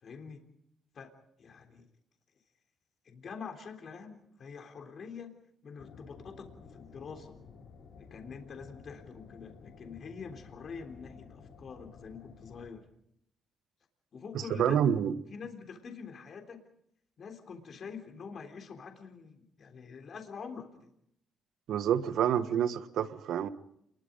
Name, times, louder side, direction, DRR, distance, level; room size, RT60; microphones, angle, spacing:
voice 1, 0.0-0.4 0.9-1.1 1.4-1.9 3.1-7.4 8.0-12.9 14.1-14.8 15.3-16.6 17.2-20.9, left 5 dB, 55° left, 5 dB, 3.5 m, -45 dB
sound 1, 5.8-12.7, left 5 dB, 80° left, 5.3 m, -53 dB
voice 2, 14.5-15.2 21.7-23.5, right 9 dB, 75° right, 12 dB, 1.3 m, -28 dB
27.5 x 21.5 x 5.2 m, 0.74 s
cardioid pair, 90°, 0 cm